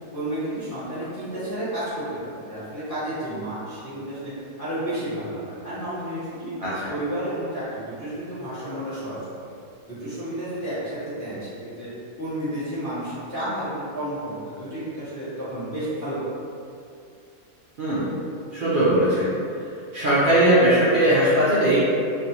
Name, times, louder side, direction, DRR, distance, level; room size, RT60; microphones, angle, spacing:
voice 1, 0.1-4.3 4.6-6.6 6.9-9.5 9.8-11.9 12.2-16.2, right 1 dB, 20° left, -13 dB, 0.5 m, -31 dB
voice 2, 6.6-6.9 17.8-18.1 18.5-19.3 19.9-21.8, right 1 dB, 85° right, -11 dB, 0.4 m, -19 dB
3.3 x 2.4 x 2.8 m, 2.5 s
omnidirectional pair, 1.7 m